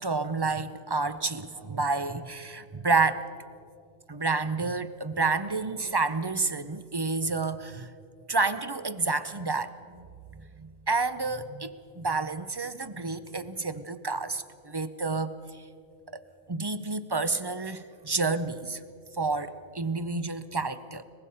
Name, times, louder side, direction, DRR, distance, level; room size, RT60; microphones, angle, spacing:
voice 1, 0.0-3.2 4.1-7.9 8.3-9.7 10.6-15.4 16.1-16.2 16.5-18.8 19.1-21.0, right 3 dB, 30° right, 12 dB, 0.5 m, -29 dB
23.0 x 21.0 x 5.6 m, 2.3 s
omnidirectional pair, 1.3 m